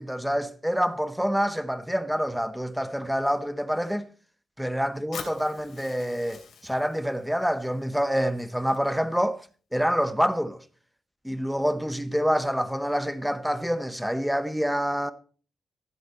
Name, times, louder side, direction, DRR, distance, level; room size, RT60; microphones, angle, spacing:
voice 1, 0.0-4.1 4.6-9.4 9.7-10.6 11.2-15.1, equal, ahead, 0.7 m, -27 dB
Fire, 5.1-9.1, left 6 dB, 60° left, 2.7 m, -45 dB
14.0 x 7.8 x 4.3 m
wide cardioid pair, 170°, 0 cm